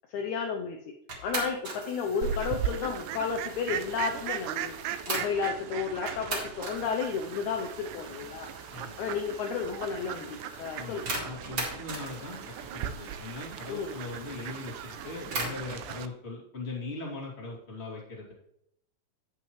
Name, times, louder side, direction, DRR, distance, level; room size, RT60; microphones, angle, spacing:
voice 1, 0.1-0.8 1.2-4.8 5.1-8.5 9.0-11.1 13.7-14.0, left 6 dB, 75° left, 3 dB, 1.9 m, -32 dB
sound 1, 1.1-5.6 6.1-15.8, right 2 dB, 35° right, 2.1 m, -40 dB
Fowl, 2.2-16.1, right 10 dB, 80° right, 1.9 m, -38 dB
voice 2, 10.8-12.4 12.7-18.3, left 3 dB, 20° left, -3 dB, 2.4 m, -40 dB
16.5 x 5.6 x 3.1 m, 0.75 s
omnidirectional pair, 3.8 m